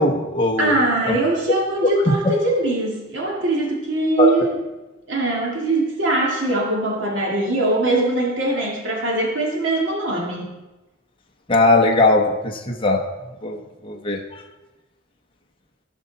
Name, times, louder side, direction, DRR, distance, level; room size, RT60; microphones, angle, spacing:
voice 1, 0.0-0.7 1.1-1.2 2.1-2.2 4.2-4.3 11.5-13.0 13.4-14.2, left 2 dB, 25° left, 0 dB, 1.0 m, -19 dB
voice 2, 0.6-4.5 5.1-10.6, right 2 dB, 65° right, -2 dB, 2.3 m, -22 dB
16.5 x 5.7 x 4.1 m, 1.1 s
head